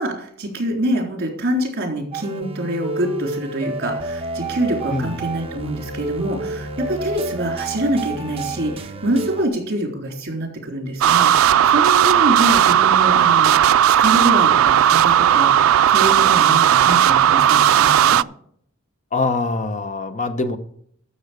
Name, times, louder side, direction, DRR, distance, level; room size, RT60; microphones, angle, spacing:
voice 1, 0.0-18.2, right 1 dB, 55° right, 2 dB, 3.6 m, -25 dB
sound 1, 2.1-9.5, right 2 dB, 30° right, 1.0 m, -29 dB
sound 2, 11.0-18.2, right 10 dB, 90° right, 0.3 m, -15 dB
voice 2, 19.1-20.6, left 3 dB, 35° left, 10 dB, 0.9 m, -23 dB
13.0 x 7.1 x 5.1 m, 0.65 s
head